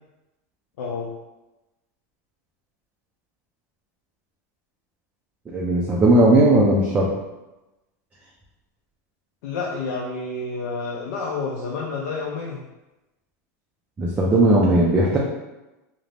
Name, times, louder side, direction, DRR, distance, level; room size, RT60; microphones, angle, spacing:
voice 1, 0.8-1.1 9.4-12.6, left 4 dB, 70° left, -3 dB, 0.4 m, -29 dB
voice 2, 5.5-7.1 14.0-15.2, right 1 dB, 15° right, -4 dB, 0.4 m, -17 dB
2.4 x 2.0 x 3.1 m, 1.0 s
supercardioid pair, 135°, 9 cm